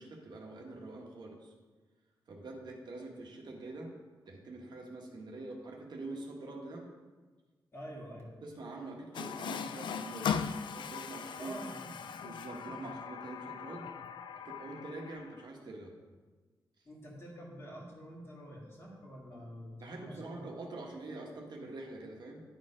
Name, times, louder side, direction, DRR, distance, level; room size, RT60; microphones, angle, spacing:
voice 1, 0.0-1.5 2.3-3.9 4.3-6.9 8.4-10.3 10.7-11.6 12.2-13.9 14.4-15.9 19.8-22.4, right 2 dB, 60° right, 0 dB, 1.2 m, -45 dB
voice 2, 7.7-8.3 11.4-12.0 16.8-20.5, equal, 30° left, -3 dB, 2.0 m, -47 dB
Water tap faucet, 9.1-15.5, left 7 dB, 70° left, 0.4 m, -39 dB
10.0 x 4.4 x 4.8 m, 1.3 s
wide cardioid pair, 130°, 8 cm